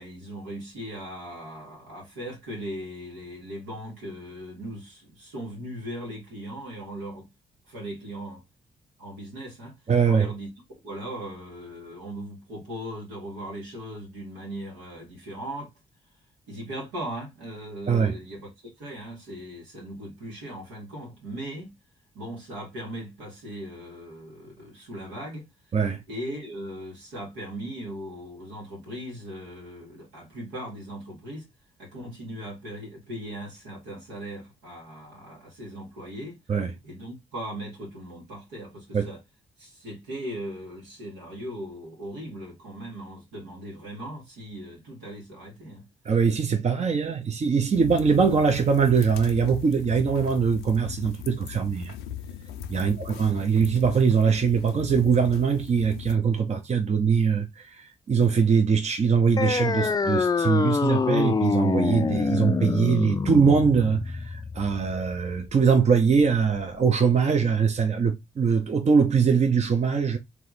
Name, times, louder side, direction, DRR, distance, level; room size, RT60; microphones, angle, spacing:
voice 1, 0.0-7.3 7.7-8.4 9.0-9.8 10.1-10.5 10.8-15.7 16.5-21.7 22.1-25.5 26.1-31.5 31.8-36.4 36.8-39.2 39.6-45.8 52.7-53.0, right 1 dB, 85° right, 1.8 m, -38 dB
voice 2, 9.9-10.3 17.9-18.2 25.7-26.0 36.5-36.7 38.9-39.1 46.0-51.9 52.7-70.2, right 6 dB, 40° right, 0.7 m, -22 dB
sound 1, 47.7-56.2, left 10 dB, 85° left, 0.5 m, -39 dB
sound 2, 59.4-66.4, left 4 dB, 25° left, 0.4 m, -26 dB
3.4 x 2.9 x 4.0 m
hypercardioid pair, 45°, 17 cm